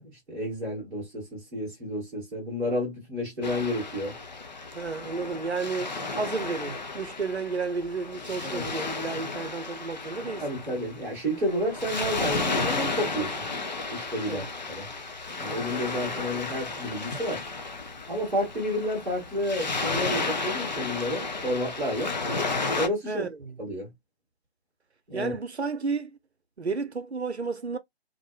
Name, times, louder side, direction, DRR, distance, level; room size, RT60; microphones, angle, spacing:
voice 1, 0.0-4.2 8.4-8.7 10.4-13.5 13.9-14.9 15.4-17.4 18.1-22.2 22.8-23.3 23.6-23.9 25.1-25.3, equal, 5° right, 0.8 m, -31 dB
Waves surf, 3.4-22.9, left 3 dB, 45° left, 0.5 m, -33 dB
voice 2, 4.7-10.6 14.2-14.5 23.1-23.3 25.1-26.2 26.6-27.8, right 4 dB, 90° right, 0.7 m, -32 dB
2.5 x 2.2 x 2.7 m
figure-of-eight pair, 150°, 32 cm